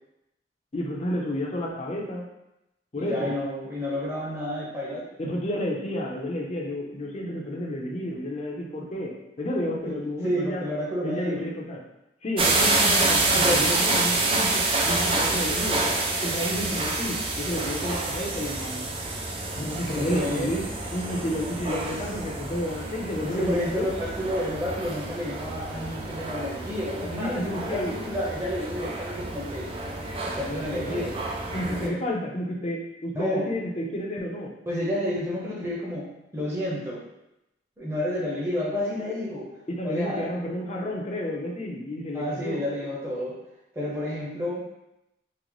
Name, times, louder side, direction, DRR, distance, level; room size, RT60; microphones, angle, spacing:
voice 1, 0.7-2.2 2.9-3.3 5.2-9.1 9.4-10.6 11.0-11.8 12.2-15.8 16.2-18.8 19.5-20.6 20.9-23.9 27.2-27.9 30.7-31.1 31.5-34.5 39.7-42.6, left 1 dB, 35° left, -1 dB, 0.6 m, -30 dB
voice 2, 3.0-5.0 9.8-11.5 13.3-13.8 15.2-15.9 19.9-20.5 23.2-29.7 30.4-31.2 31.7-31.9 33.1-33.5 34.7-37.0 37.8-39.6 39.8-40.3 42.1-43.3 43.7-44.6, left 1 dB, 15° right, -6 dB, 0.8 m, -30 dB
sound 1, 12.4-31.9, right 2 dB, 30° right, 0.3 m, -28 dB
3.8 x 2.0 x 3.1 m, 0.89 s
head